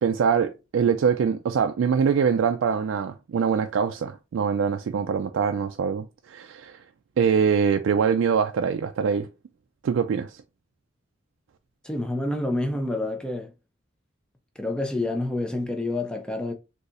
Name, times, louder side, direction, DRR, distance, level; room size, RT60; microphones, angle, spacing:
voice 1, 0.0-6.8 7.2-9.3 9.8-10.4, right 6 dB, 80° right, 0.3 m, -23 dB
voice 2, 11.8-13.5 14.6-16.5, left 2 dB, 5° left, 0.5 m, -28 dB
4.0 x 2.7 x 2.5 m
head